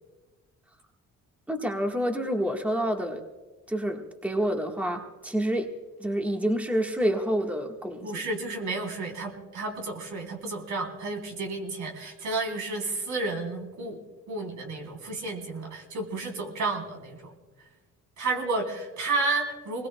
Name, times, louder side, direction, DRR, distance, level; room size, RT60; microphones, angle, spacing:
voice 1, 1.5-3.2 3.7-5.7 6.0-8.2, equal, 5° right, 2 dB, 1.4 m, -28 dB
voice 2, 8.0-14.0 14.3-17.3 18.2-19.9, right 3 dB, 75° right, 1 dB, 3.5 m, -31 dB
25.5 x 20.5 x 2.3 m, 1.2 s
cardioid pair, 90°, 30 cm